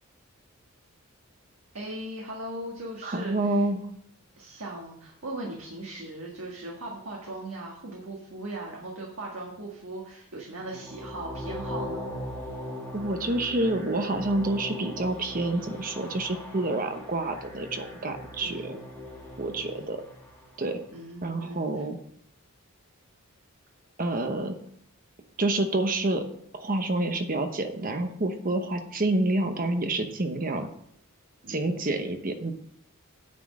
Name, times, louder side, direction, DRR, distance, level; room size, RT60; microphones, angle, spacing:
voice 1, 1.7-3.7 4.4-12.1 18.4-18.7 19.6-19.9 20.9-21.8 31.4-31.8, right 1 dB, 70° right, -2 dB, 1.8 m, -39 dB
voice 2, 3.0-3.8 12.9-18.8 19.4-20.0 20.6-20.8 21.2-22.0 24.0-24.5 25.4-26.2 26.5-30.7 31.5-32.5, right 2 dB, 40° right, 6 dB, 1.0 m, -28 dB
sound 1, 10.6-20.7, left 1 dB, 10° left, 2.3 m, -40 dB
9.7 x 4.4 x 7.2 m, 0.68 s
head